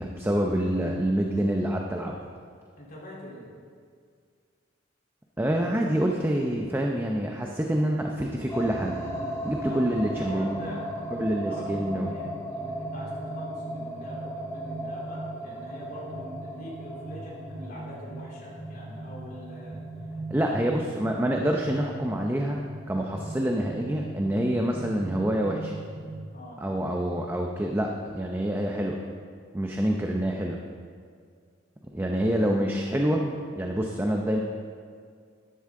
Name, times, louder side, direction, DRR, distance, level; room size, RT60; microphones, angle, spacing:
voice 1, 0.0-2.2 5.4-9.0 9.4-10.6 11.1-12.1 20.3-22.6 22.9-25.7 26.6-29.0 29.5-30.6 31.9-34.4, right 1 dB, 10° right, 1 dB, 0.6 m, -27 dB
voice 2, 2.8-3.5 9.6-10.9 11.3-19.8 20.3-20.8 26.3-26.6, equal, 50° left, -5 dB, 3.6 m, -44 dB
sound 1, 8.5-26.1, right 1 dB, 15° left, 1.7 m, -37 dB
13.5 x 11.0 x 3.8 m, 2.1 s
head